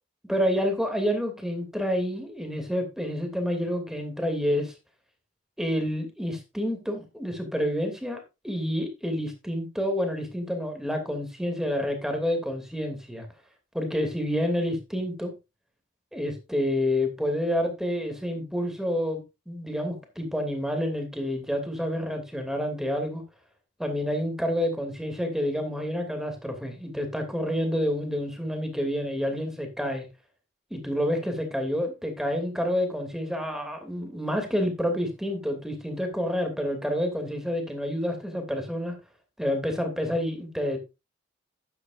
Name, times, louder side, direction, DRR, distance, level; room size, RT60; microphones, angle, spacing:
voice 1, 0.3-4.7 5.6-13.3 13.7-15.3 16.1-19.2 19.5-23.2 23.8-30.1 30.7-39.0 39.4-40.8, equal, 5° right, 5 dB, 2.7 m, -28 dB
12.0 x 9.6 x 2.6 m, 0.25 s
head